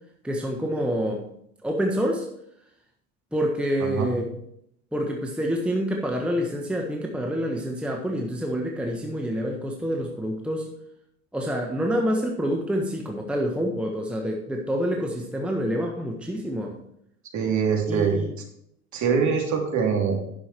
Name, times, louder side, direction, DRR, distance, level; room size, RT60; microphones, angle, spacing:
voice 1, 0.2-1.2 1.6-2.3 3.3-4.3 4.9-10.7 11.3-16.8 17.9-18.3, equal, ahead, 0 dB, 1.3 m, -27 dB
voice 2, 3.8-4.1 17.3-18.2 18.9-20.2, right 6 dB, 40° right, 1 dB, 2.8 m, -23 dB
10.5 x 6.9 x 4.5 m, 0.73 s
hypercardioid pair, 85°, 44 cm